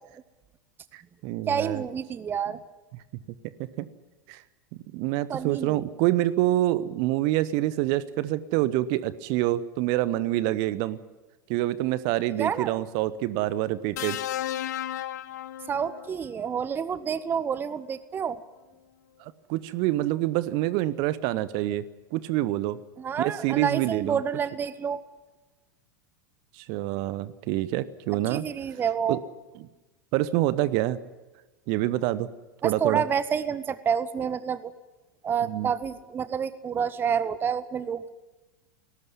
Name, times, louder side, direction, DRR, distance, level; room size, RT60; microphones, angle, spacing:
voice 1, 0.9-1.8 2.9-3.0 3.8-3.9 4.3-4.4 4.9-11.0 11.5-14.2 19.2-22.8 23.2-24.2 26.6-28.5 29.1-29.2 29.6-29.7 30.1-31.0 31.7-32.3 32.6-33.0 35.4-35.7, right 15 dB, 45° right, 17 dB, 0.9 m, -26 dB
voice 2, 1.5-2.6 5.3-5.8 12.4-12.8 15.7-18.4 23.0-25.0 28.3-29.2 32.6-34.7 35.2-38.1, right 7 dB, 20° right, 16 dB, 0.8 m, -28 dB
sound 1, 14.0-16.2 17.5-17.7, left 12 dB, 55° left, 1.0 m, -34 dB
19.5 x 17.5 x 9.6 m, 1.1 s
figure-of-eight pair, 90°, 11 cm